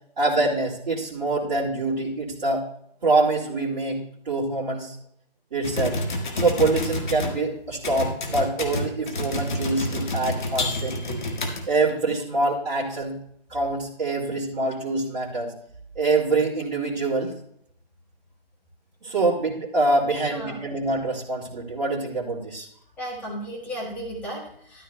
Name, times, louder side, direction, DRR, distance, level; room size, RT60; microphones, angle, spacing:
voice 1, 0.2-2.7 3.0-4.0 4.2-5.0 5.5-6.0 6.3-11.2 11.7-13.2 13.5-15.5 15.9-17.3 19.0-22.7, right 2 dB, 40° right, -8 dB, 2.4 m, -25 dB
sound 1, 5.6-7.4 7.8-11.9, left 2 dB, 50° left, 1.7 m, -28 dB
voice 2, 20.2-20.5 23.0-24.8, equal, 5° left, -6 dB, 1.4 m, -34 dB
12.5 x 11.5 x 2.2 m, 0.69 s
figure-of-eight pair, 155°, 31 cm